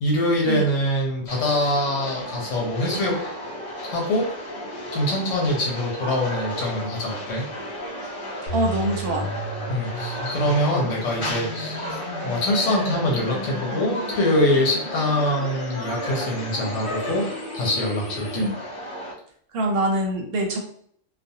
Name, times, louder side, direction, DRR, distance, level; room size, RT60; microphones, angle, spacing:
voice 1, 0.0-3.2 3.8-4.3 4.9-7.4 9.7-17.3 17.5-18.5, left 1 dB, 85° left, -2 dB, 1.0 m, -24 dB
sound 1, 1.3-19.1, equal, 30° left, 0.8 m, -34 dB
sound 2, 8.5-18.5, equal, 50° left, 1.1 m, -36 dB
voice 2, 8.5-9.3 18.3-18.5 19.5-20.6, right 1 dB, 60° right, 1 dB, 0.8 m, -24 dB
2.5 x 2.2 x 2.7 m, 0.63 s
omnidirectional pair, 1.3 m